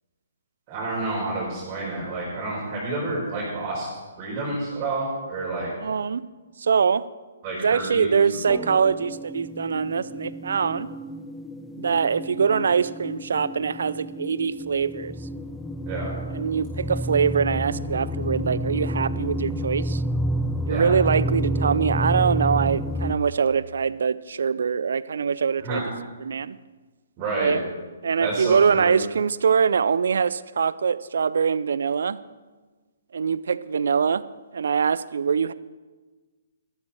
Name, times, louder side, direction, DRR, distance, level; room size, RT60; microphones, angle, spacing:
voice 1, 0.7-3.9 4.2-5.7 7.4-8.2 15.8-16.1 20.7-20.9 25.6-25.8 27.2-27.6 28.2-28.9, right 2 dB, 30° right, -7 dB, 5.1 m, -29 dB
voice 2, 5.8-6.2 6.6-7.1 7.5-10.9 11.8-15.1 16.3-20.0 20.7-25.8 26.2-26.6 27.4-27.6 28.0-32.2 33.1-34.2 34.5-35.5, right 6 dB, 65° right, 17 dB, 0.5 m, -23 dB
sound 1, 8.5-23.2, right 1 dB, 5° left, 0.7 m, -30 dB
13.5 x 13.0 x 4.5 m, 1.3 s
figure-of-eight pair, 130°, 0 cm